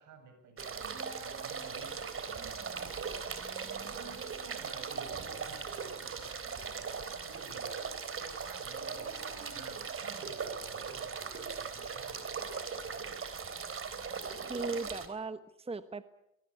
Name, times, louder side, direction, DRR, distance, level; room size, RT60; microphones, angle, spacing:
voice 1, 0.0-2.6 3.1-7.8 8.2-13.2, right 5 dB, 75° right, 8 dB, 7.7 m, -54 dB
sound 1, 0.6-15.1, right 5 dB, 45° right, 3.8 m, -39 dB
voice 2, 3.4-4.0 14.4-16.0, right 3 dB, 20° right, 11 dB, 1.2 m, -39 dB
23.5 x 21.5 x 8.5 m, 0.82 s
cardioid pair, 90°, 30 cm